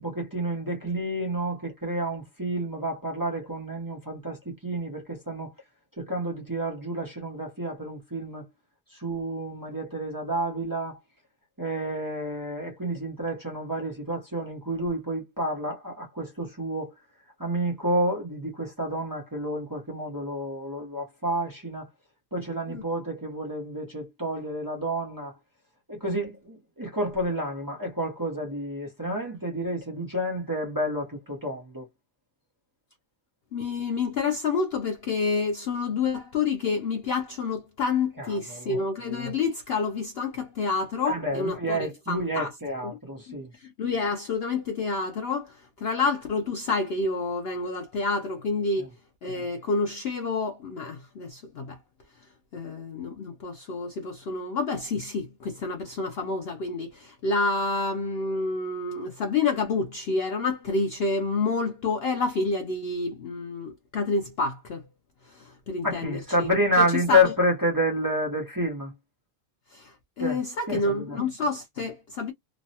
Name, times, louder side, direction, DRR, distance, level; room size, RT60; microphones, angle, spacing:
voice 1, 0.0-5.5 6.0-8.5 8.9-11.0 11.6-16.9 17.4-21.9 22.3-25.3 25.9-31.9 38.2-38.8 41.0-43.5 48.8-48.9 65.8-68.9 70.2-70.4 70.7-71.2, equal, 20° right, 0.8 m, -29 dB
voice 2, 33.5-42.5 43.3-48.9 49.2-51.8 52.5-64.8 65.3-66.5 67.1-67.2 69.7-72.3, left 3 dB, 65° left, 0.6 m, -28 dB
3.0 x 2.1 x 2.7 m
omnidirectional pair, 1.5 m